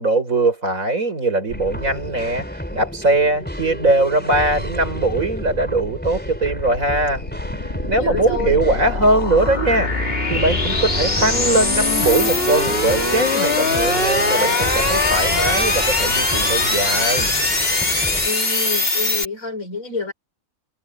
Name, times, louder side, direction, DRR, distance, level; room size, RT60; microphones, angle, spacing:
voice 1, 0.0-2.5 2.7-7.2 7.9-9.9 10.3-17.3, right 2 dB, 70° right, 6.0 m, -20 dB
sound 1, 1.5-18.3, equal, 5° left, 4.0 m, -31 dB
sound 2, 5.8-19.3, left 2 dB, 45° left, 3.0 m, -21 dB
voice 2, 8.0-8.6 18.2-20.1, left 3 dB, 75° left, 5.8 m, -28 dB
omnidirectional pair, 1.4 m